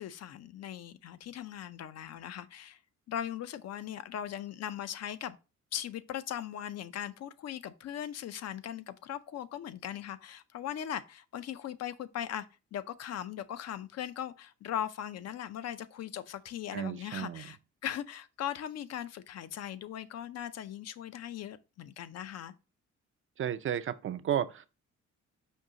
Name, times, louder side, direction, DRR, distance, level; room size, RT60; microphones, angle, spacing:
voice 1, 0.0-2.8 3.1-5.4 5.7-12.5 12.7-22.5, left 10 dB, 60° left, 0.5 m, -39 dB
voice 2, 16.7-17.5 23.4-24.7, right 10 dB, 45° right, 0.4 m, -33 dB
5.4 x 2.7 x 3.7 m
cardioid pair, 90°, 30 cm